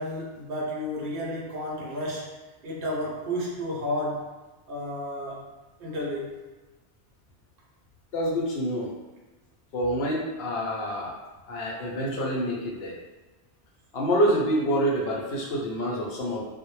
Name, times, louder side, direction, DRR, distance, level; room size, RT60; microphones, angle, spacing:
voice 1, 0.0-2.3 2.6-4.3 4.7-5.5 5.8-6.4 11.9-12.0, equal, 60° right, -4 dB, 0.8 m, -32 dB
voice 2, 8.1-8.9 9.7-11.1 11.5-12.9 13.9-16.4, equal, 70° left, -3 dB, 0.8 m, -27 dB
2.1 x 2.1 x 3.0 m, 1.2 s
omnidirectional pair, 1.1 m